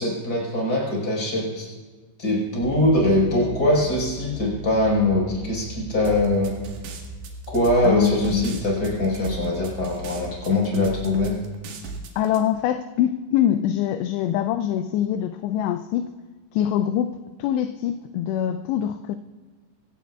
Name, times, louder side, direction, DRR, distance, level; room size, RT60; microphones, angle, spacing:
voice 1, 0.0-1.7 2.2-6.6 7.5-11.4, left 1 dB, 20° left, -2 dB, 5.0 m, -22 dB
sound 1, 2.6-10.3, right 2 dB, 85° right, 4.4 m, -39 dB
sound 2, 6.0-12.4, right 4 dB, 70° right, 3.3 m, -37 dB
voice 2, 7.8-8.6 12.2-16.1 16.5-19.2, left 10 dB, 85° left, 9 dB, 2.5 m, -24 dB
24.0 x 16.5 x 2.4 m, 1.3 s
omnidirectional pair, 5.2 m